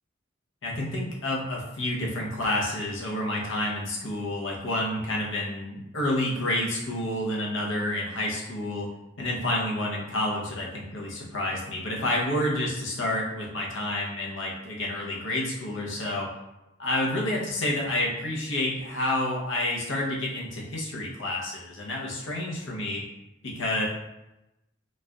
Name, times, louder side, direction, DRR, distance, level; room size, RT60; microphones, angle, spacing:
voice 1, 0.6-8.9 9.2-16.3 16.8-23.0 23.4-23.9, left 1 dB, 75° left, -2 dB, 0.8 m, -29 dB
4.0 x 2.4 x 2.3 m, 0.92 s
head